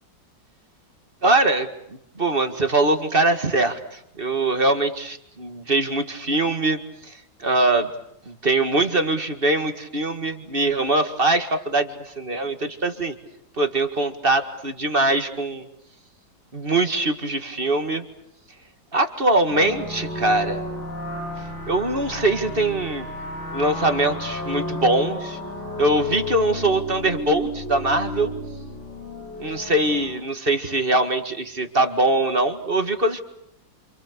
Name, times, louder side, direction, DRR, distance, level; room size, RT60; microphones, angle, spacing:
voice 1, 1.2-7.9 8.3-13.2 13.6-15.7 16.5-18.0 18.9-20.6 21.7-23.1 23.5-25.4 25.8-28.3 29.4-33.2, right 2 dB, 30° right, 7 dB, 2.0 m, -22 dB
sound 1, 19.5-30.1, left 1 dB, 85° left, 9.0 m, -32 dB
29.5 x 27.0 x 6.8 m, 0.76 s
omnidirectional pair, 2.0 m